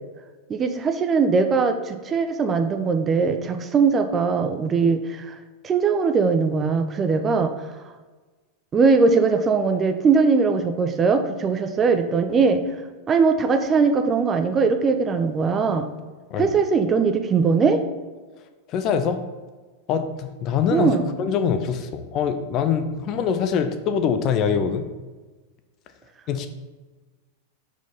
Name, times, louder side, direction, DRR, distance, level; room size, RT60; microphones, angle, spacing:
voice 1, 0.5-5.3 5.6-7.5 8.7-12.6 13.1-15.9 16.4-17.8 20.7-21.1, right 5 dB, 25° right, 8 dB, 0.5 m, -20 dB
voice 2, 18.7-19.2 19.9-24.9 26.3-26.5, left 7 dB, 35° left, 8 dB, 0.5 m, -24 dB
4.6 x 4.4 x 5.3 m, 1.3 s
figure-of-eight pair, 90°, 0 cm